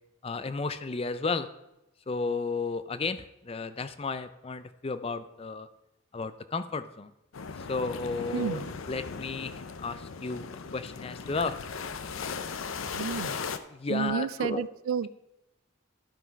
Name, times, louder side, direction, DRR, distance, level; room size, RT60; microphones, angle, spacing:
voice 1, 0.2-1.5 2.1-5.7 6.1-7.1 7.7-9.5 9.8-11.6 13.7-14.7, left 4 dB, 30° left, 12 dB, 0.4 m, -33 dB
sound 1, 7.3-13.6, left 5 dB, 80° left, 0.6 m, -38 dB
voice 2, 8.3-8.7 12.9-13.4 13.9-15.1, right 6 dB, 85° right, 18 dB, 0.4 m, -31 dB
12.0 x 6.0 x 4.6 m, 0.91 s
head